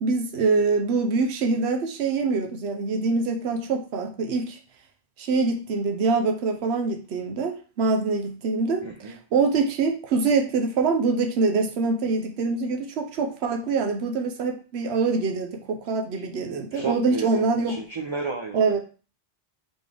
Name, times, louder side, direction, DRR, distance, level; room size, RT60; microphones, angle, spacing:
voice 1, 0.0-4.6 5.2-17.7 18.5-18.8, right 4 dB, 85° right, 3 dB, 1.0 m, -24 dB
voice 2, 8.8-9.2 16.2-16.3 16.7-18.8, right 3 dB, 40° right, 1 dB, 0.5 m, -33 dB
4.0 x 3.7 x 3.3 m, 0.36 s
omnidirectional pair, 1.1 m